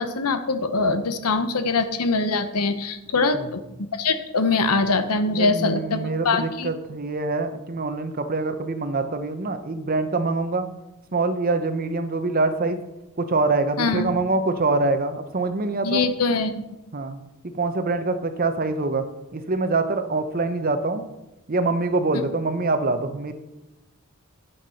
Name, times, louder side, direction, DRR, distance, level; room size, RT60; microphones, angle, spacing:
voice 1, 0.0-6.7 13.8-14.1 15.8-16.6, left 3 dB, 85° left, 10 dB, 0.9 m, -23 dB
voice 2, 3.2-3.5 5.3-10.7 11.1-12.8 13.2-16.0 16.9-19.1 19.3-21.0 21.5-23.3, right 3 dB, 40° right, 9 dB, 0.8 m, -25 dB
9.3 x 5.9 x 5.7 m, 0.94 s
head